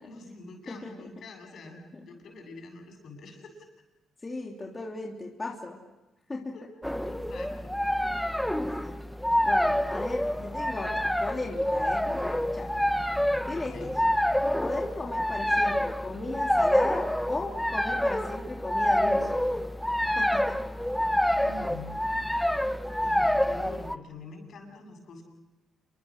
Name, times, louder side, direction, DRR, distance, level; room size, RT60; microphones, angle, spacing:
voice 1, 0.0-3.7 6.5-6.7 7.0-7.8 8.0-8.3 10.3-10.4 11.8-12.1 13.5-13.9 21.4-22.0 23.0-25.2, left 3 dB, 60° left, 4 dB, 7.8 m, -46 dB
voice 2, 4.2-5.8 6.3-6.5 8.5-9.0 9.4-12.7 13.4-13.9 14.6-19.4 20.1-20.6, left 2 dB, 25° left, -1 dB, 3.1 m, -36 dB
sound 1, 6.8-24.0, left 1 dB, 5° left, 1.0 m, -27 dB
28.0 x 23.5 x 6.5 m, 1.1 s
cardioid pair, 90°, 0 cm